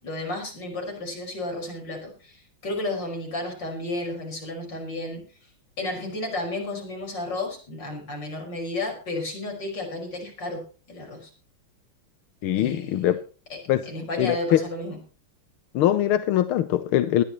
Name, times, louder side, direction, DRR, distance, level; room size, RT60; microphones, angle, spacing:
voice 1, 0.0-5.2 5.8-10.6 10.9-11.3 12.6-13.0 13.9-15.0, left 2 dB, 60° left, 6.1 m, -32 dB
voice 2, 12.4-13.2 13.7-13.8 14.2-14.6 15.7-17.2, left 12 dB, 90° left, 1.7 m, -22 dB
20.0 x 12.0 x 3.1 m
omnidirectional pair, 2.3 m